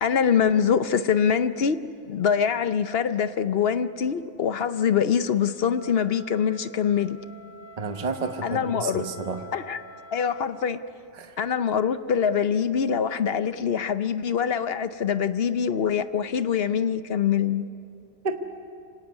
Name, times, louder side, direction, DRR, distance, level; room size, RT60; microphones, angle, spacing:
voice 1, 0.0-1.8 2.1-7.2 8.4-9.1 9.5-9.8 10.1-10.8 11.4-17.6, left 7 dB, 60° left, 12 dB, 0.9 m, -24 dB
Wind instrument woodwind instrument, 5.7-10.7, equal, 40° left, 1.7 m, -46 dB
voice 2, 7.8-9.4 11.2-11.3 18.2-18.4, right 4 dB, 35° right, 6 dB, 1.1 m, -31 dB
26.0 x 17.5 x 9.7 m, 2.5 s
omnidirectional pair, 1.2 m